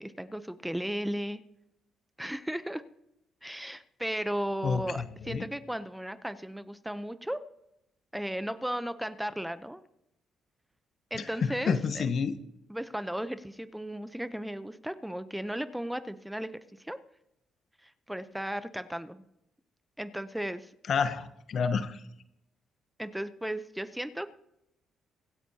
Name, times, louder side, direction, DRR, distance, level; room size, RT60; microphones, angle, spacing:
voice 1, 0.0-1.4 2.2-2.8 3.4-7.4 8.1-9.8 11.1-12.1 12.7-16.5 16.8-17.0 17.8-19.2 20.0-20.7 23.0-24.3, equal, 5° right, 12 dB, 0.6 m, -35 dB
voice 2, 4.6-5.5 11.2-12.4 20.9-22.0, left 6 dB, 60° left, 11 dB, 0.9 m, -30 dB
24.5 x 8.3 x 2.8 m, 0.83 s
cardioid pair, 90°, 0 cm